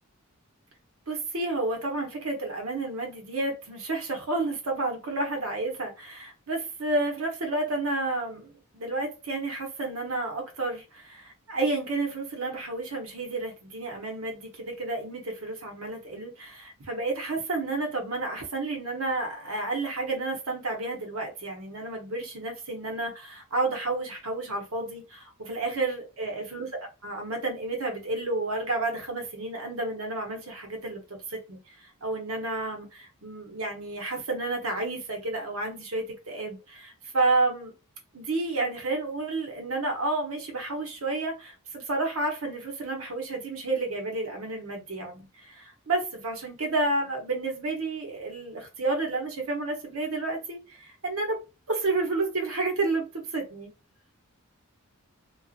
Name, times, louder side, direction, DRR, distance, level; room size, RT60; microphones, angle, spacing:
voice 1, 1.1-37.7 38.1-51.4 51.7-53.7, right 2 dB, 75° right, 0.9 m, -31 dB
2.6 x 2.4 x 2.4 m
head